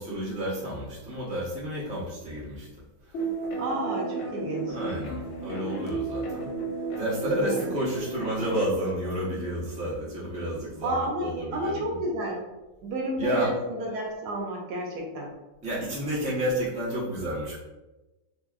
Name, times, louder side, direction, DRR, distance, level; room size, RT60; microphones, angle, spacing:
voice 1, 0.0-2.7 3.1-3.2 4.7-6.5 7.0-12.0 13.1-13.6 15.6-17.6, right 1 dB, 10° right, -7 dB, 0.3 m, -30 dB
sound 1, 3.1-8.6, right 3 dB, 80° left, 0.6 m, -33 dB
voice 2, 3.6-4.8 7.4-7.8 10.8-11.3 11.5-12.4 12.8-15.3, right 1 dB, 75° right, -1 dB, 1.2 m, -31 dB
3.2 x 2.6 x 2.4 m, 1.1 s
omnidirectional pair, 1.8 m